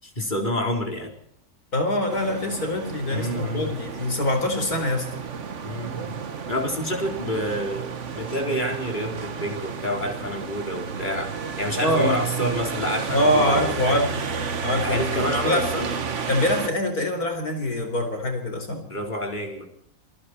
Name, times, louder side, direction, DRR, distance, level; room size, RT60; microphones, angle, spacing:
voice 1, 0.0-1.1 3.1-3.7 5.6-11.3 11.6-14.0 14.8-15.9 18.9-19.6, equal, 30° left, 2 dB, 4.4 m, -28 dB
voice 2, 1.7-5.1 11.8-12.2 13.1-14.1 14.6-15.7 16.3-18.8, left 1 dB, 90° left, 5 dB, 5.0 m, -24 dB
sound 1, 2.1-16.7, right 6 dB, 55° right, 1.6 m, -31 dB
27.0 x 21.5 x 4.5 m, 0.71 s
omnidirectional pair, 1.5 m